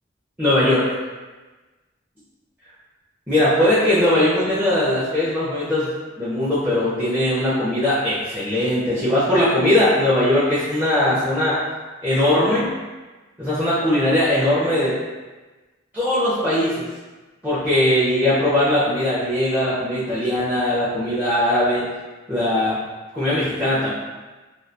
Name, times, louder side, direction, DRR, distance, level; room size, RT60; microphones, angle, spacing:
voice 1, 0.4-0.8 3.3-5.9 6.2-11.6 12.0-12.7 13.4-14.9 15.9-16.8 17.4-21.8 22.3-22.7 23.1-23.9, left 1 dB, 10° right, -13 dB, 0.5 m, -20 dB
2.2 x 2.2 x 2.6 m, 1.2 s
head